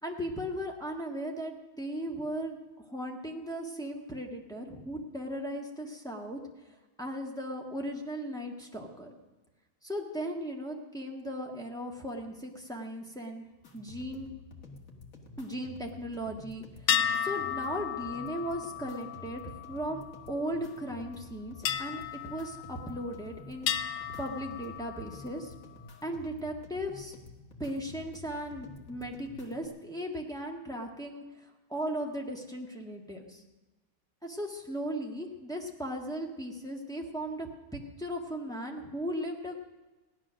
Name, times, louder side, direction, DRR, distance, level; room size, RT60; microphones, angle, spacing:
voice 1, 0.0-6.4 7.0-9.2 9.8-13.4 13.7-14.3 15.4-16.6 17.2-25.5 26.0-27.1 27.6-33.4 34.2-39.5, equal, ahead, 0 dB, 1.3 m, -37 dB
sound 1, 13.6-29.6, left 3 dB, 40° left, 1.8 m, -50 dB
sound 2, 16.9-20.6 21.6-23.2 23.7-25.3, left 9 dB, 70° left, 1.2 m, -34 dB
16.5 x 11.0 x 6.3 m, 1.2 s
omnidirectional pair, 2.4 m